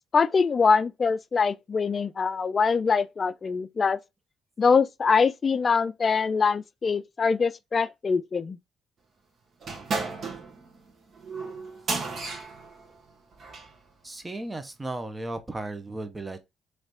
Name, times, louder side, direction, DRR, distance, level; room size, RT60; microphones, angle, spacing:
voice 1, 0.1-4.0 4.6-8.6, left 5 dB, 40° left, 0.4 m, -23 dB
sound 1, 9.6-13.8, right 4 dB, 55° right, 1.5 m, -34 dB
voice 2, 14.0-16.4, right 2 dB, 20° right, 0.8 m, -35 dB
3.3 x 3.2 x 4.0 m
cardioid pair, 90°, 0 cm